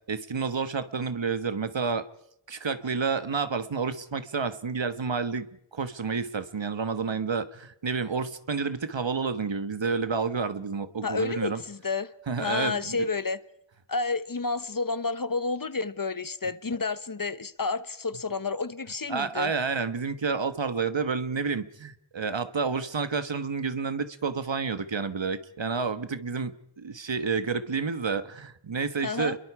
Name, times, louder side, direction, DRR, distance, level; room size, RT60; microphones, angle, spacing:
voice 1, 0.1-2.1 2.5-11.6 12.3-13.1 19.1-29.4, right 5 dB, 70° right, 1.3 m, -30 dB
voice 2, 11.0-12.1 12.4-13.4 13.9-19.5 29.0-29.4, left 4 dB, 45° left, 1.1 m, -30 dB
29.0 x 22.5 x 4.8 m
wide cardioid pair, 40°, 46 cm